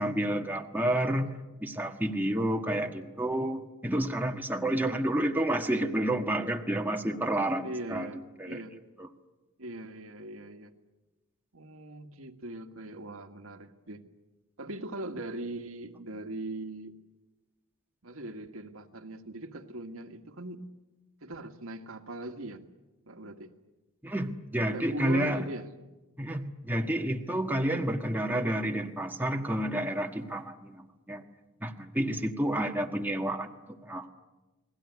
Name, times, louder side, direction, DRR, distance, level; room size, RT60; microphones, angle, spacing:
voice 1, 0.0-1.3 1.6-8.6 9.0-9.1 24.0-25.4 26.2-31.2 31.6-34.1, right 1 dB, 10° right, 3 dB, 1.5 m, -30 dB
voice 2, 7.6-8.2 8.5-8.8 9.6-10.7 11.5-14.0 14.6-17.0 18.0-20.7 21.2-22.6 23.1-23.5 24.7-25.7, right 2 dB, 75° right, 6 dB, 1.8 m, -40 dB
29.5 x 20.0 x 9.5 m, 1.2 s
head